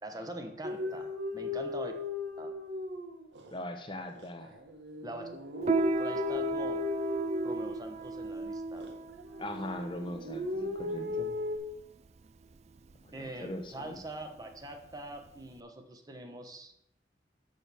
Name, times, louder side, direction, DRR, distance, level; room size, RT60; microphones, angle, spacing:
voice 1, 0.0-1.9 2.4-2.6 5.0-5.3 6.0-6.8 7.4-8.9 13.1-16.7, right 1 dB, 20° right, 5 dB, 0.9 m, -43 dB
Beagle Howling, 0.6-3.6 4.1-8.3 8.7-9.7 10.0-11.6, left 3 dB, 80° right, 1.2 m, -36 dB
voice 2, 3.5-4.5 9.4-11.3 13.0-14.0, left 1 dB, 25° left, 6 dB, 0.7 m, -40 dB
Piano, 5.6-15.6, right 3 dB, 35° right, 0.3 m, -36 dB
6.4 x 5.8 x 6.8 m, 0.79 s
head